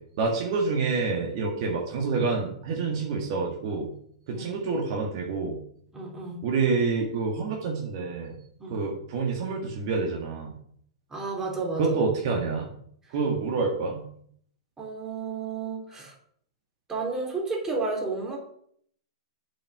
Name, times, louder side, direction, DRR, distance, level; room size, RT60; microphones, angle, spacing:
voice 1, 0.0-3.9 4.3-5.6 6.4-8.4 8.7-10.5 11.8-12.7 13.1-14.0, right 4 dB, 55° right, 1 dB, 1.9 m, -27 dB
voice 2, 5.9-6.4 8.6-8.8 11.1-12.0 14.8-16.1 16.9-18.4, right 3 dB, 15° right, -1 dB, 3.1 m, -32 dB
7.1 x 5.8 x 6.2 m, 0.65 s
hypercardioid pair, 120°, 3 cm